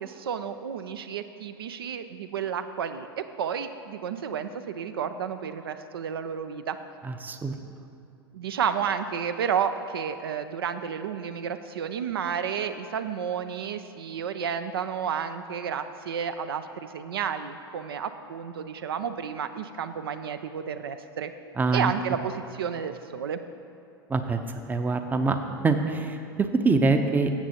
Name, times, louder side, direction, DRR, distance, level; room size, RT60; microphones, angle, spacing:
voice 1, 0.0-6.8 8.3-21.3 21.7-23.4, right 7 dB, 75° right, 10 dB, 0.4 m, -31 dB
voice 2, 7.0-7.6 21.6-21.9 24.1-24.4 24.7-25.4 25.6-27.3, right 3 dB, 15° right, 7 dB, 0.6 m, -24 dB
13.0 x 7.6 x 2.8 m, 2.6 s
figure-of-eight pair, 85°, 13 cm